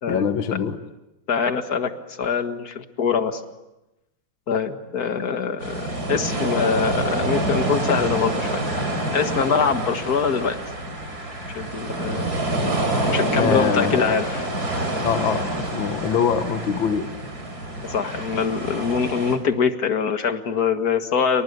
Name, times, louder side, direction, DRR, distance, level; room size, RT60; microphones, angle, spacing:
voice 1, 0.1-0.8 13.4-14.2 15.0-17.1, left 7 dB, 65° left, 8 dB, 2.0 m, -23 dB
voice 2, 1.3-1.9 2.2-3.4 4.5-8.6 9.1-10.6 11.5-12.4 13.1-14.4 17.8-21.4, left 6 dB, 45° left, 8 dB, 2.1 m, -24 dB
sound 1, 5.6-19.4, right 1 dB, 45° right, 5.3 m, -27 dB
29.5 x 25.0 x 8.2 m, 0.98 s
omnidirectional pair, 2.4 m